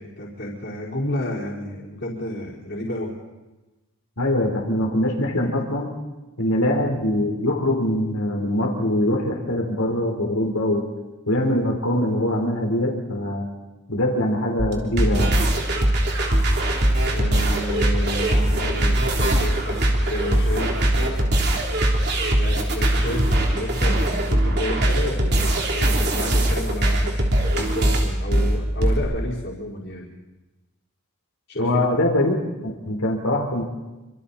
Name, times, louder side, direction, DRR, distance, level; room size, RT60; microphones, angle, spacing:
voice 1, 0.0-3.1 17.1-21.4 22.4-27.3 27.5-30.1 31.5-31.8, left 1 dB, 50° left, -6 dB, 5.0 m, -31 dB
voice 2, 4.2-5.9 6.4-10.9 11.3-13.5 13.9-15.4 31.6-32.4 32.6-33.6, left 1 dB, 80° left, 2 dB, 4.1 m, -23 dB
sound 1, 14.6-29.0, right 1 dB, 50° right, 3.5 m, -21 dB
28.0 x 26.0 x 4.3 m, 1.1 s
head